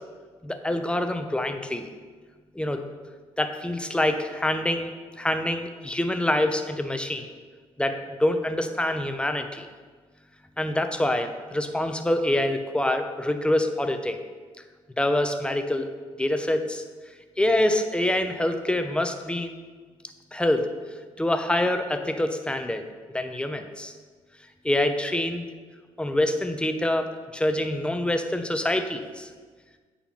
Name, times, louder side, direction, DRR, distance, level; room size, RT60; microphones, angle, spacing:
voice 1, 0.4-1.9 2.5-2.8 3.4-4.9 5.2-7.3 7.8-9.7 10.6-14.2 15.0-15.9 16.2-16.8 17.4-19.5 20.3-20.7 21.2-22.8 23.1-23.9 24.6-25.4 26.0-29.3, left 1 dB, 10° left, 7 dB, 0.7 m, -25 dB
8.5 x 4.2 x 5.7 m, 1.5 s
cardioid pair, 80°, 11 cm